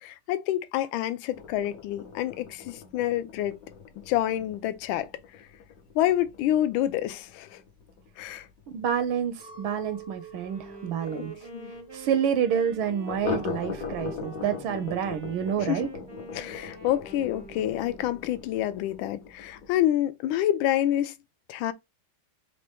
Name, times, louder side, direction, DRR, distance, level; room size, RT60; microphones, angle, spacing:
voice 1, 0.0-3.6 4.1-5.1 5.9-7.5 8.2-8.4 11.1-11.3 11.5-11.7 15.6-15.9 16.3-21.1 21.5-21.7, left 12 dB, 75° left, 1.3 m, -27 dB
sound 1, 1.3-10.6 10.9-11.0 11.3-11.4 11.8-11.9 13.0-19.8, left 6 dB, 55° left, 1.0 m, -40 dB
voice 2, 8.7-11.3 11.9-15.9, right 8 dB, 80° right, 1.4 m, -28 dB
Chink clink, 9.4-14.9, right 7 dB, 10° left, 0.6 m, -49 dB
Wind instrument woodwind instrument, 10.4-18.4, right 2 dB, 45° right, 0.3 m, -46 dB
4.3 x 2.9 x 3.3 m
omnidirectional pair, 2.3 m